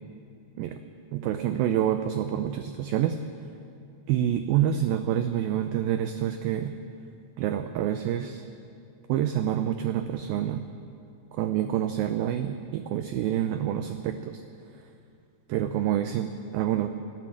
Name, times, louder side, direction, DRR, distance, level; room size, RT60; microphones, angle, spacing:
voice 1, 1.1-3.2 4.1-6.7 7.4-8.4 9.1-10.7 11.3-14.4 15.5-16.9, right 10 dB, 80° right, 8 dB, 2.2 m, -27 dB
26.0 x 13.5 x 7.5 m, 2.6 s
omnidirectional pair, 4.8 m